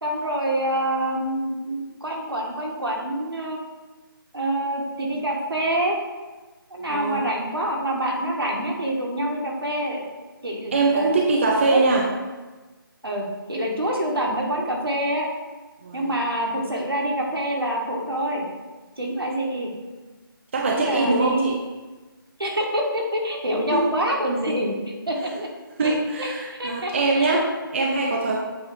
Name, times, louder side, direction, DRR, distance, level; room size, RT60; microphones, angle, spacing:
voice 1, 0.0-3.6 4.3-6.0 6.7-10.0 10.4-11.1 11.6-11.8 13.0-15.3 15.9-18.4 19.0-19.7 20.7-21.5 22.4-24.7 25.1-25.5 25.8-26.3 26.6-27.4, right 1 dB, 80° right, -1 dB, 1.5 m, -26 dB
voice 2, 6.9-7.3 10.7-12.1 15.8-16.1 20.5-21.6 23.7-23.8 25.8-28.4, right 3 dB, 30° right, 1 dB, 0.5 m, -22 dB
8.3 x 2.9 x 4.8 m, 1.2 s
figure-of-eight pair, 155°, 12 cm